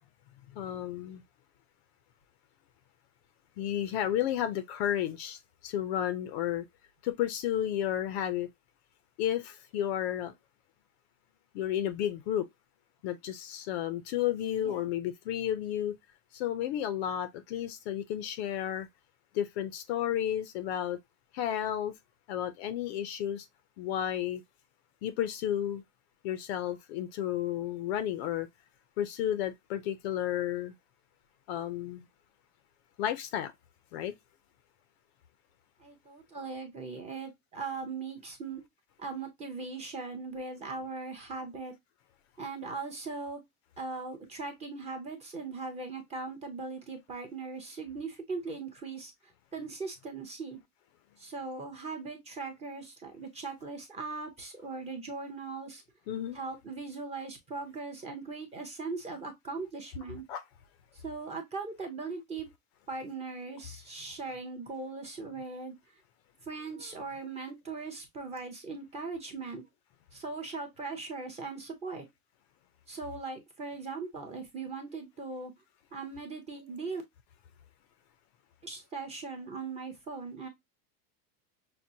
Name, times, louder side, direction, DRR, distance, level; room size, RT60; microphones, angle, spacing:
voice 1, 0.5-1.2 3.6-6.6 7.0-8.5 9.2-10.3 11.5-12.5 13.0-15.9 16.3-18.9 19.3-21.0 21.3-21.9 22.3-23.5 23.8-24.4 25.0-25.8 26.2-28.5 29.0-30.7 31.5-32.0 33.0-33.5 33.9-34.1 56.1-56.4 60.3-60.4, left 11 dB, 45° left, 0.4 m, -32 dB
voice 2, 35.8-38.6 39.0-41.7 42.4-43.4 43.8-49.1 49.5-50.6 51.2-55.8 56.3-60.2 60.9-62.5 62.9-65.7 66.5-69.7 70.1-72.1 72.9-75.5 75.9-77.0 78.6-80.5, right 4 dB, 15° right, 0.6 m, -39 dB
5.9 x 2.1 x 2.6 m
supercardioid pair, 155°, 46 cm